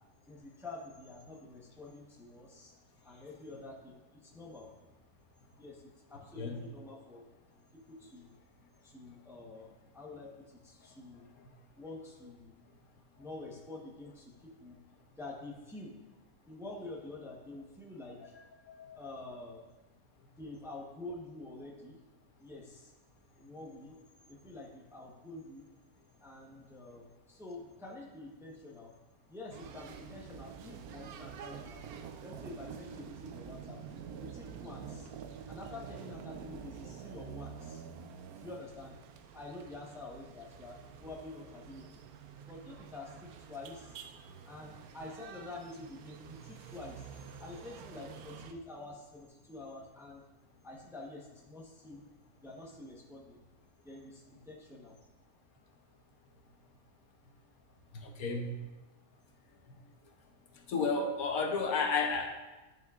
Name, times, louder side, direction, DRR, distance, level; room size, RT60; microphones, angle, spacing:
voice 1, 0.3-2.7 3.0-4.7 5.6-7.3 7.7-8.4 8.8-11.3 11.8-12.6 13.2-14.8 15.2-16.0 16.5-18.3 18.9-19.7 20.4-22.0 22.4-22.9 23.4-24.0 24.3-25.7 26.2-28.9 29.3-31.8 32.2-33.8 34.2-35.1 35.5-37.8 38.4-39.0 39.3-42.0 42.5-44.0 44.4-47.0 47.4-50.2 50.6-52.1 52.4-53.4 53.8-55.0, left 2 dB, ahead, -2 dB, 0.9 m, -48 dB
sound 1, 29.5-48.5, right 7 dB, 80° right, 1.1 m, -48 dB
voice 2, 58.0-58.5 60.7-62.3, left 4 dB, 75° left, 3 dB, 1.3 m, -31 dB
10.5 x 6.5 x 2.5 m, 1.1 s
omnidirectional pair, 1.5 m